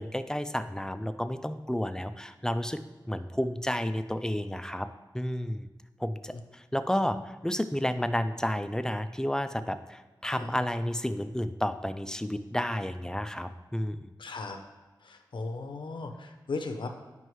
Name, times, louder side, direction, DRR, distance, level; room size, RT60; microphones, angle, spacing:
voice 1, 0.0-2.8 3.1-4.9 5.1-5.7 6.0-14.1, equal, 10° left, 10 dB, 0.4 m, -31 dB
voice 2, 14.2-14.6 15.0-16.9, left 3 dB, 85° left, 5 dB, 0.6 m, -37 dB
9.4 x 5.4 x 3.1 m, 1.2 s
wide cardioid pair, 90°, 8 cm